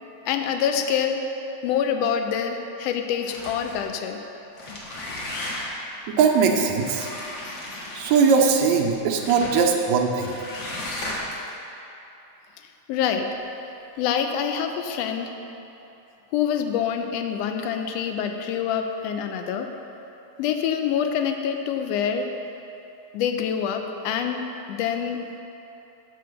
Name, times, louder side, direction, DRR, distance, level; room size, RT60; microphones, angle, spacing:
voice 1, 0.3-1.3 1.6-4.2 12.9-13.3 14.0-15.3 16.3-19.7 20.4-22.3 23.1-24.4 24.7-25.2, left 8 dB, 80° left, 5 dB, 1.6 m, -26 dB
sound 1, 3.2-3.8 4.4-5.9 6.7-8.5 9.2-9.6 10.2-11.5, left 1 dB, 50° left, 1.5 m, -35 dB
voice 2, 6.1-7.1 8.0-10.4, right 5 dB, 80° right, 1 dB, 2.0 m, -20 dB
8.4 x 5.5 x 6.4 m, 2.9 s
omnidirectional pair, 3.3 m